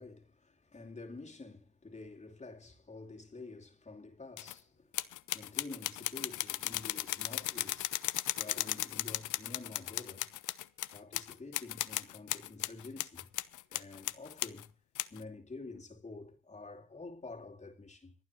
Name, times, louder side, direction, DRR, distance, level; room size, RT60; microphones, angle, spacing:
voice 1, 0.0-8.0 8.4-10.3 10.9-13.3 13.7-14.7 15.1-18.1, left 3 dB, 25° left, 2.6 m, -49 dB
sound 1, 4.4-4.5 4.9-14.7 15.0-15.2, left 15 dB, 80° left, 0.8 m, -36 dB
26.0 x 9.5 x 3.1 m
cardioid pair, 90°, 30 cm